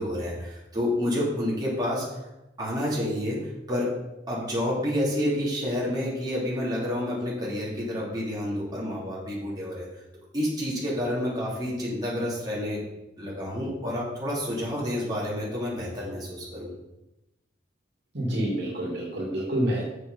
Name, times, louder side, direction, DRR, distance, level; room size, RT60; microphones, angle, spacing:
voice 1, 0.0-2.1 2.6-3.9 4.3-9.9 10.3-12.8 13.2-16.7, left 1 dB, 20° right, -6 dB, 3.0 m, -29 dB
voice 2, 18.1-19.8, right 1 dB, 65° right, -3 dB, 2.5 m, -27 dB
6.8 x 6.8 x 5.6 m, 0.96 s
head